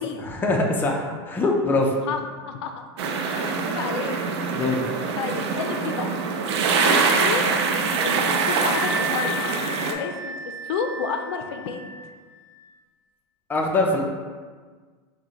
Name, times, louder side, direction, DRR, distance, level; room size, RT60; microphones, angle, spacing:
voice 1, 0.2-1.9 4.5-4.8 13.5-14.0, left 2 dB, 15° left, 0 dB, 0.5 m, -23 dB
voice 2, 2.1-2.9 3.2-4.2 4.6-4.7 5.2-6.1 6.8-7.5 8.0-9.3 9.9-10.3 10.6-11.8, left 5 dB, 75° left, 5 dB, 0.4 m, -30 dB
sound 1, 3.0-9.9, right 4 dB, 75° right, 0.5 m, -24 dB
sound 2, 5.3-12.1, right 1 dB, 55° right, 0.8 m, -34 dB
5.1 x 2.1 x 2.9 m, 1.5 s
supercardioid pair, 125°, 14 cm